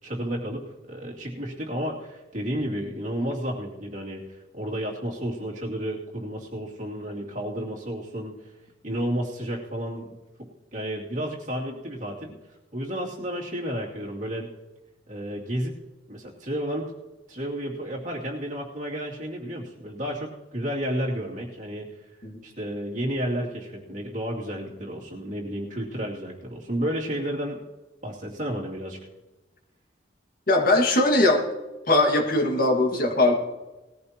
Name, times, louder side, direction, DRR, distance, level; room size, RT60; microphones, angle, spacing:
voice 1, 0.0-8.3 8.8-10.1 10.4-12.3 12.7-14.5 15.1-15.7 16.1-16.9 17.3-21.9 22.4-27.6 28.0-29.0, equal, 45° right, -3 dB, 2.7 m, -31 dB
voice 2, 30.5-31.4 31.9-33.4, left 2 dB, 55° left, 2 dB, 1.9 m, -20 dB
19.5 x 14.0 x 3.0 m, 1.1 s
head